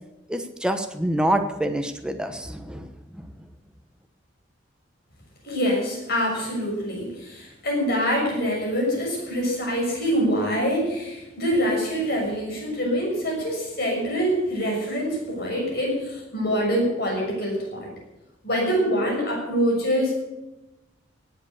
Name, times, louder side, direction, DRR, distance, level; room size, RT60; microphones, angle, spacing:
voice 1, 0.3-3.3, right 1 dB, 5° right, 6 dB, 1.1 m, -26 dB
voice 2, 5.4-17.9 18.4-20.1, equal, 55° left, -1 dB, 6.6 m, -25 dB
18.5 x 8.2 x 7.1 m, 0.98 s
head